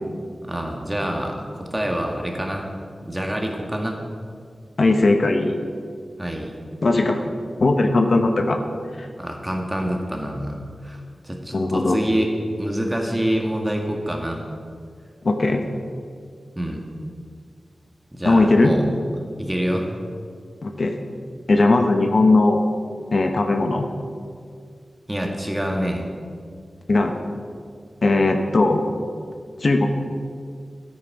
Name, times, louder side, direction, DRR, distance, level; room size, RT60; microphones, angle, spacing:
voice 1, 0.4-2.6 3.0-4.0 6.2-6.6 9.2-10.6 10.8-12.3 12.6-14.4 16.6-16.8 18.1-18.9 19.4-19.9 25.1-26.1, equal, 15° right, 1 dB, 1.7 m, -26 dB
voice 2, 4.8-5.6 6.8-7.2 7.6-8.6 9.0-9.1 11.5-12.0 15.2-15.6 18.2-18.7 20.6-21.0 21.5-22.6 23.1-23.9 26.9-27.2 28.0-28.8 29.6-29.9, left 2 dB, 65° left, 4 dB, 0.9 m, -18 dB
9.2 x 9.1 x 4.7 m, 2.1 s
cardioid pair, 50°, 0 cm